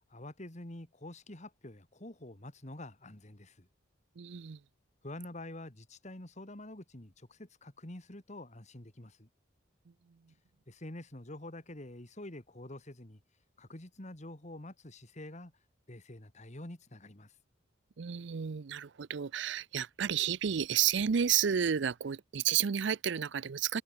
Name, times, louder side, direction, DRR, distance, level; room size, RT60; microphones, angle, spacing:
voice 1, 0.1-3.7 5.0-9.3 10.7-13.2 13.6-17.4, left 1 dB, 35° left, 2.4 m, -47 dB
voice 2, 4.2-4.6 18.0-23.8, right 8 dB, 60° right, 0.5 m, -31 dB
head